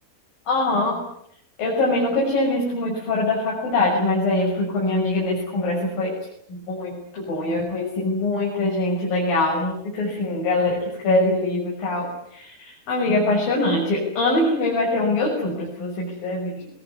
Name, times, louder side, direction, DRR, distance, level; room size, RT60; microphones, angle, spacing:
voice 1, 0.5-1.0 1.6-6.1 6.5-16.7, left 2 dB, 60° left, -3 dB, 8.1 m, -23 dB
23.5 x 21.5 x 9.8 m, 0.72 s
omnidirectional pair, 4.7 m